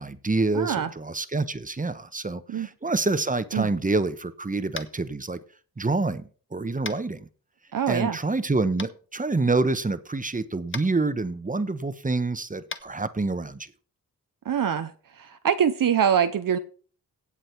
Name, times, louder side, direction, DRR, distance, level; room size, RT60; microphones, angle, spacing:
voice 1, 0.0-5.4 5.8-7.3 7.9-13.7, right 3 dB, 25° right, 1.1 m, -27 dB
voice 2, 0.5-0.9 2.5-2.7 3.5-3.7 7.7-8.2 14.5-14.9 15.2-16.6, right 8 dB, 65° right, 0.8 m, -24 dB
Tap, 4.7-5.0 6.8-7.0 8.8-8.9 10.7-10.9 12.7-12.8, left 4 dB, 35° left, 1.3 m, -35 dB
17.0 x 7.6 x 4.6 m
cardioid pair, 75°, 35 cm